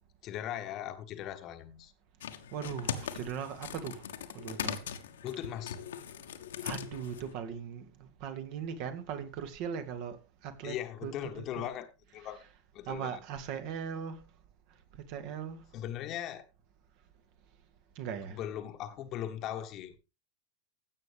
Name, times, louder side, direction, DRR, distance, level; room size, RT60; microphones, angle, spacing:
voice 1, 0.2-1.9 5.2-5.8 10.6-12.5 12.7-13.2 15.7-16.5 18.2-20.0, left 11 dB, 35° left, 1.4 m, -39 dB
sound 1, 2.2-7.3, left 8 dB, 60° left, 1.4 m, -40 dB
voice 2, 2.5-4.1 4.3-4.8 6.6-11.7 12.1-12.5 12.9-14.2 14.9-15.7 18.0-18.4, right 7 dB, 45° right, 2.2 m, -39 dB
15.5 x 8.4 x 3.5 m
figure-of-eight pair, 90°, 0 cm